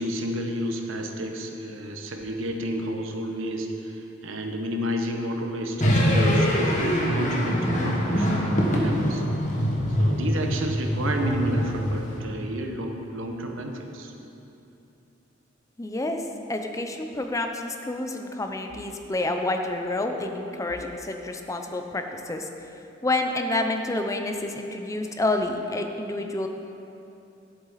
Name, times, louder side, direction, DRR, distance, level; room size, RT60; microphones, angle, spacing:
voice 1, 0.0-9.2 10.0-14.1, equal, 85° right, 3 dB, 0.9 m, -31 dB
sound 1, 5.8-12.2, equal, 40° left, 1.4 m, -24 dB
voice 2, 15.8-16.2 16.5-22.5 23.0-26.5, left 2 dB, 15° left, 4 dB, 0.5 m, -28 dB
11.0 x 7.8 x 4.1 m, 2.8 s
head